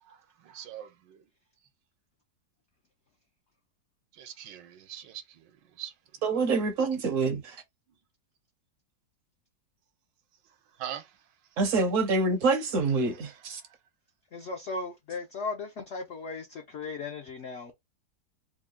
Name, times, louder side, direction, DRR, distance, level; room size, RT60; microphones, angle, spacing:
voice 1, 0.0-1.2 4.1-5.5 5.8-5.9 10.8-11.2 13.0-13.7, right 10 dB, 80° right, 1.4 m, -43 dB
voice 2, 6.2-7.6 11.6-13.6, right 3 dB, 60° right, 0.8 m, -26 dB
voice 3, 14.3-17.7, left 3 dB, 85° left, 0.6 m, -37 dB
3.6 x 2.2 x 3.6 m
omnidirectional pair, 1.9 m